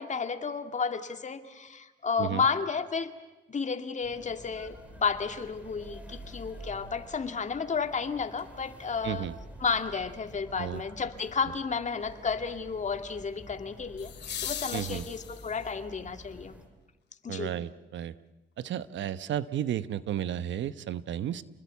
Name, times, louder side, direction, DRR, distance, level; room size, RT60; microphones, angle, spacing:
voice 1, 0.0-3.1 3.5-9.3 9.6-14.1 14.4-16.6 17.2-17.6, left 5 dB, 35° left, 8 dB, 2.2 m, -32 dB
sound 1, 4.0-16.7, equal, 5° right, 5.0 m, -49 dB
sound 2, 8.3-8.4 14.0-15.8 18.0-18.1, left 9 dB, 60° left, 2.3 m, -39 dB
voice 2, 9.0-9.3 10.6-10.8 14.7-15.1 17.3-18.1 18.6-21.4, right 10 dB, 70° right, 15 dB, 1.0 m, -33 dB
29.0 x 20.5 x 8.3 m, 1.1 s
cardioid pair, 90°, 20 cm